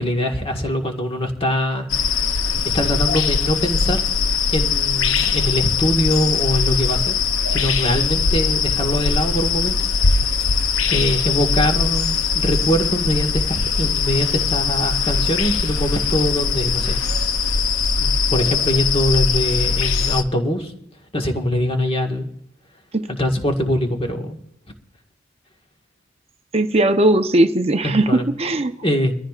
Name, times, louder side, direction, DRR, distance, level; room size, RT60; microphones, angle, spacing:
voice 1, 0.0-1.9 2.7-4.0 4.5-7.1 7.5-9.8 10.9-17.0 18.0-20.7 21.1-22.3 23.1-24.4 27.8-28.3 28.8-29.1, equal, 30° left, 1.7 m, -22 dB
sound 1, 1.9-20.2, left 5 dB, 75° left, 0.7 m, -21 dB
voice 2, 26.5-28.7, right 1 dB, 30° right, 0.8 m, -18 dB
23.5 x 14.0 x 2.5 m
head